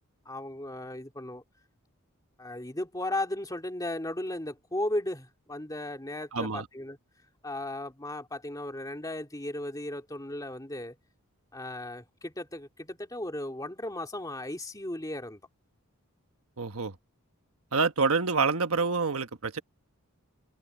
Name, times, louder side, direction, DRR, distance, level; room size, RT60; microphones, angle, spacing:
voice 1, 0.2-1.4 2.4-7.0 7.4-11.0 11.5-15.4, left 1 dB, 15° left, 2.6 m, -36 dB
voice 2, 6.3-6.7 16.6-17.0 17.7-19.6, right 4 dB, 70° right, 1.3 m, -27 dB
head